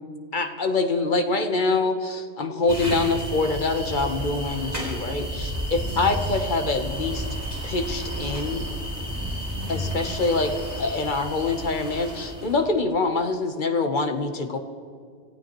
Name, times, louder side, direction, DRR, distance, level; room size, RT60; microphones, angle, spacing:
voice 1, 0.3-7.3 7.6-8.7 9.7-14.6, left 3 dB, 45° left, 6 dB, 1.2 m, -25 dB
sound 1, 2.7-12.7, equal, 15° right, 4.6 m, -32 dB
27.0 x 14.5 x 3.1 m, 2.1 s
omnidirectional pair, 1.2 m